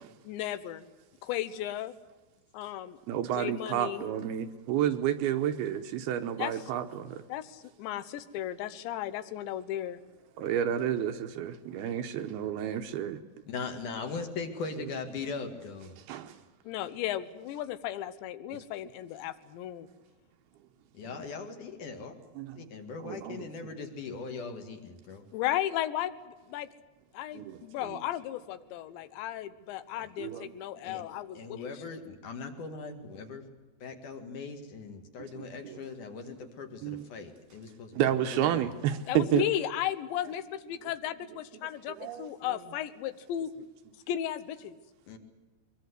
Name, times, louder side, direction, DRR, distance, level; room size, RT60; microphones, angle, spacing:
voice 1, 0.3-0.9 1.2-1.9 2.5-3.0 3.4-4.1 6.4-6.6 7.3-10.0 16.6-19.9 25.3-26.2 26.5-26.7 27.1-31.6 31.9-32.0 39.1-43.5 44.1-44.8, left 12 dB, 85° left, 3.3 m, -35 dB
voice 2, 3.1-7.2 10.4-13.2 16.1-16.3 22.4-22.6 23.0-23.7 27.3-27.6 30.2-30.5 35.4-35.8 36.8-37.1 38.0-39.5 41.9-42.3, right 10 dB, 75° right, 2.6 m, -30 dB
voice 3, 13.5-15.9 20.9-22.1 22.5-25.3 30.0-30.1 30.8-31.0 31.3-33.5 33.8-38.6 45.1-45.2, left 4 dB, 55° left, 3.0 m, -40 dB
23.0 x 22.5 x 8.1 m
omnidirectional pair, 5.0 m